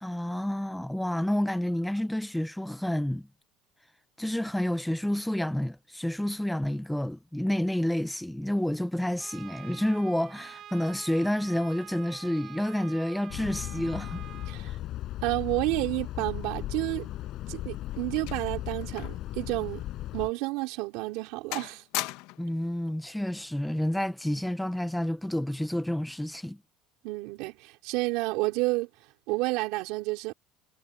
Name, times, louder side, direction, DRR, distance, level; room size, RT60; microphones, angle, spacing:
voice 1, 0.0-3.3 4.2-14.3 14.7-14.8 22.4-26.6, left 1 dB, ahead, 0.6 m, -29 dB
Trumpet, 9.2-14.6, right 11 dB, 35° right, 5.5 m, -47 dB
sound 1, 13.3-20.3, left 14 dB, 45° left, 5.2 m, -36 dB
voice 2, 15.2-17.1 17.5-19.8 20.1-21.8 27.0-28.9 29.3-30.3, right 22 dB, 65° right, 3.7 m, -30 dB
sound 2, 17.2-19.3 19.6-19.8 20.4-20.6 21.0-21.3 21.5-22.6 23.6-23.8, left 19 dB, 70° left, 1.4 m, -38 dB
cardioid pair, 165°, 0 cm